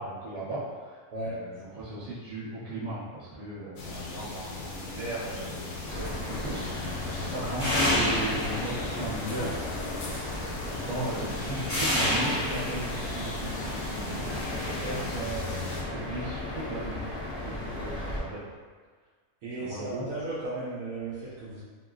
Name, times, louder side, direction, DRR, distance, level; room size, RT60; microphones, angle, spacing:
voice 1, 0.0-1.0 1.4-9.9 10.2-17.0 17.3-18.4 19.5-20.0, right 1 dB, 25° right, -10 dB, 1.0 m, -37 dB
sound 1, 3.8-15.8, left 3 dB, 70° left, 0.9 m, -38 dB
sound 2, 5.9-18.2, left 1 dB, 20° left, 0.9 m, -32 dB
voice 2, 19.4-21.6, right 2 dB, 65° right, -10 dB, 1.0 m, -35 dB
2.8 x 2.8 x 2.5 m, 1.5 s
omnidirectional pair, 1.7 m